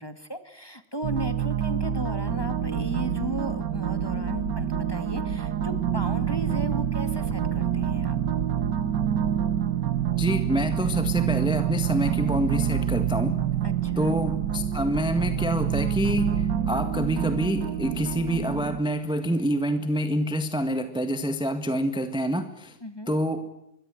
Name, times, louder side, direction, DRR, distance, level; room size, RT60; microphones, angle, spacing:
voice 1, 0.0-8.2 13.6-14.2 22.8-23.1, equal, 15° left, 9 dB, 1.9 m, -36 dB
sound 1, 1.0-18.8, right 9 dB, 70° right, 1.7 m, -27 dB
voice 2, 10.2-13.4 14.0-22.8 23.1-23.5, equal, 5° right, 8 dB, 1.5 m, -27 dB
25.5 x 22.5 x 7.8 m, 0.89 s
omnidirectional pair, 2.1 m